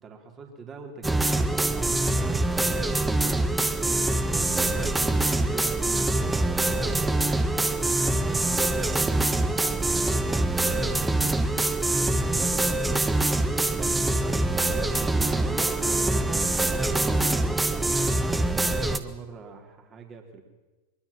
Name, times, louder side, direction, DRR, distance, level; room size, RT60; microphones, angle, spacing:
voice 1, 0.0-4.2 4.5-10.9 11.2-11.5 12.3-18.0 18.4-20.4, right 4 dB, 25° right, 4 dB, 4.1 m, -44 dB
sound 1, 1.0-19.0, right 2 dB, 10° right, 1.5 m, -24 dB
24.0 x 23.0 x 7.4 m, 1.2 s
figure-of-eight pair, 90°, 0 cm